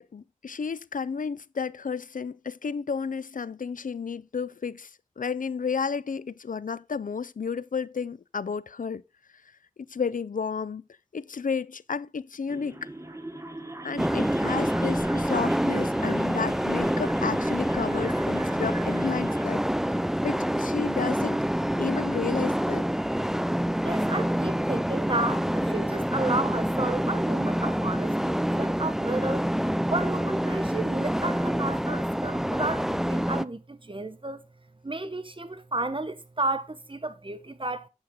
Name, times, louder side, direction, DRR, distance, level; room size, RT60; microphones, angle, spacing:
voice 1, 0.0-4.9 5.2-9.0 9.9-10.8 11.1-12.9 13.8-21.4 21.8-22.9, left 5 dB, 85° left, 0.4 m, -32 dB
sound 1, 12.5-19.5, right 1 dB, 20° right, 1.2 m, -42 dB
sound 2, 14.0-33.5, equal, 5° right, 0.4 m, -27 dB
voice 2, 23.8-29.4 29.9-34.4 34.8-37.9, right 2 dB, 40° right, 1.0 m, -32 dB
8.6 x 7.1 x 3.7 m
wide cardioid pair, 45°, 13 cm